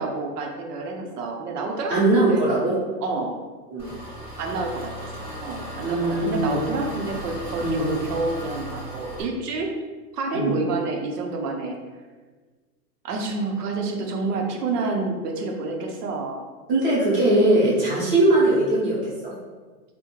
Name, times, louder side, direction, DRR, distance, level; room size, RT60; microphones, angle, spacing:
voice 1, 0.0-2.0 2.3-2.4 3.0-3.3 4.4-9.7 10.1-11.8 13.0-16.4, right 3 dB, 80° right, 2 dB, 0.6 m, -28 dB
voice 2, 1.9-2.7 3.7-3.9 5.8-6.6 7.6-7.9 10.3-10.6 16.7-19.3, right 1 dB, 35° right, -6 dB, 0.7 m, -20 dB
Engine, 3.8-9.2, equal, 5° right, 0.4 m, -36 dB
2.3 x 2.1 x 2.9 m, 1.4 s
supercardioid pair, 175°, 47 cm